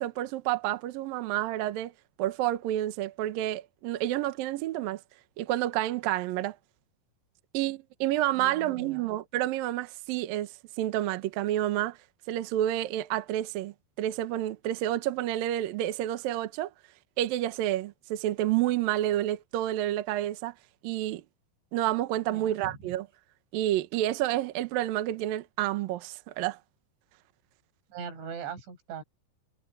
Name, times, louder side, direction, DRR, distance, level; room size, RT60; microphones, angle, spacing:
voice 1, 0.0-1.9 2.2-5.0 5.4-6.6 7.5-12.0 12.3-16.7 17.2-20.5 20.8-21.2 21.7-23.1 23.5-26.6, right 13 dB, 80° right, 2.1 m, -29 dB
voice 2, 8.4-9.1 22.3-22.8 27.9-29.0, right 6 dB, 65° right, 8.7 m, -40 dB
omnidirectional pair, 5.8 m